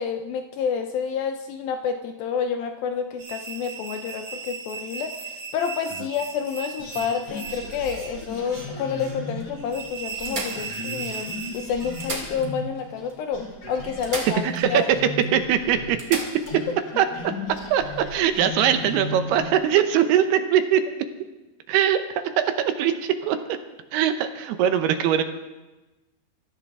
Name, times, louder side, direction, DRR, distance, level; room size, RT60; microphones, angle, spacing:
voice 1, 0.0-14.8, left 6 dB, 80° left, 6 dB, 2.1 m, -29 dB
sound 1, 3.2-12.3, right 6 dB, 50° right, 1.6 m, -37 dB
sound 2, 6.7-8.4 9.0-9.1 9.4-9.5 10.2-11.2 11.8-12.8 13.1-13.2 14.0-14.9 15.2-15.3 16.0-16.6 18.5-18.7, right 2 dB, 25° right, 2.1 m, -36 dB
sound 3, 6.8-13.1 13.3-19.6, left 2 dB, 45° left, 6.4 m, -36 dB
voice 2, 14.3-15.0 15.3-16.2 17.0-17.1 17.7-20.8 21.7-23.4 23.9-25.2, right 9 dB, 75° right, 8 dB, 2.6 m, -21 dB
25.0 x 14.0 x 3.6 m, 1.1 s
omnidirectional pair, 5.0 m